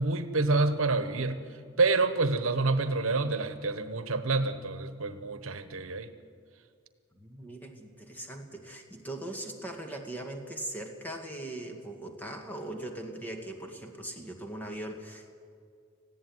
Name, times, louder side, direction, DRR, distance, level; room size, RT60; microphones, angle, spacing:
voice 1, 0.0-1.4 1.8-6.1, right 3 dB, 80° right, 10 dB, 1.1 m, -27 dB
voice 2, 7.1-15.3, right 1 dB, 10° left, 3 dB, 2.0 m, -40 dB
19.0 x 15.0 x 9.5 m, 2.2 s
head